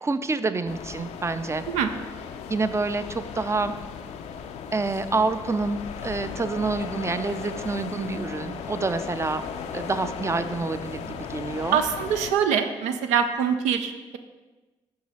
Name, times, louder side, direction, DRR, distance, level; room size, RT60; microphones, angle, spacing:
voice 1, 0.0-1.6 2.5-3.7 4.7-9.4 9.7-11.8, right 3 dB, 25° right, 11 dB, 0.4 m, -27 dB
sound 1, 0.7-12.3, left 7 dB, 75° left, 0.4 m, -37 dB
voice 2, 11.7-14.2, right 7 dB, 80° right, 8 dB, 0.4 m, -24 dB
5.3 x 4.7 x 4.1 m, 1.2 s
hypercardioid pair, 40°, 12 cm